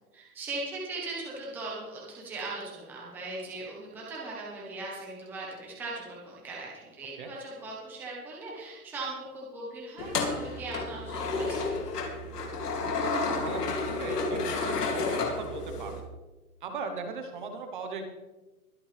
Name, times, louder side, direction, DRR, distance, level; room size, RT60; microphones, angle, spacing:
voice 1, 0.1-11.8, right 2 dB, 5° right, -5 dB, 1.2 m, -39 dB
sound 1, 10.0-16.0, left 3 dB, 85° left, 3.0 m, -31 dB
voice 2, 12.7-15.9 16.6-18.1, right 4 dB, 30° right, 5 dB, 1.3 m, -39 dB
23.0 x 8.6 x 3.5 m, 1.1 s
hypercardioid pair, 175°, 46 cm